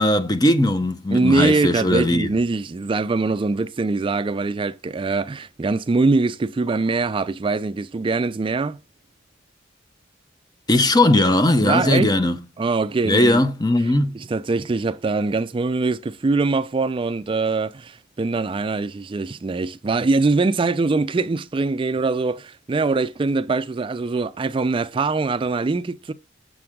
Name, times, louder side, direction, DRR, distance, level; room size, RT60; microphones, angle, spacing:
voice 1, 0.0-2.3 10.7-12.4 13.0-14.2, left 1 dB, 20° left, 0.7 m, -18 dB
voice 2, 1.1-8.8 11.6-12.1 12.6-13.4 14.1-26.1, right 3 dB, 25° right, 0.3 m, -22 dB
7.7 x 6.1 x 3.6 m
head